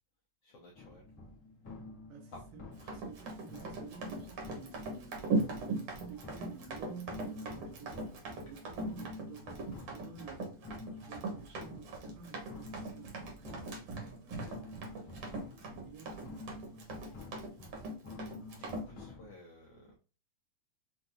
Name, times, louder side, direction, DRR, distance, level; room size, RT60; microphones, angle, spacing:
voice 1, 0.4-1.1 2.3-2.4 2.8-3.0 18.2-20.0, left 1 dB, 85° left, 1.3 m, -55 dB
sound 1, 0.8-19.3, left 2 dB, 60° left, 0.9 m, -49 dB
voice 2, 2.1-2.6 2.9-15.0 15.7-16.9, right 6 dB, 80° right, 2.6 m, -51 dB
Run, 2.8-18.9, right 2 dB, 65° right, 1.7 m, -39 dB
5.8 x 2.3 x 2.6 m
omnidirectional pair, 3.8 m